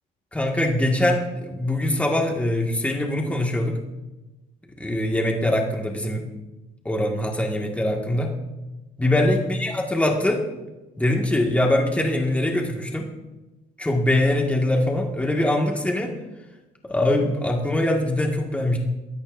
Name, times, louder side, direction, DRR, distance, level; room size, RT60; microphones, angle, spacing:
voice 1, 0.3-3.8 4.8-6.2 6.9-8.3 9.0-10.4 11.0-13.1 13.8-16.1 16.8-18.8, left 1 dB, 10° left, 0 dB, 1.9 m, -23 dB
23.5 x 13.5 x 2.7 m, 1.1 s
cardioid pair, 110°, 17 cm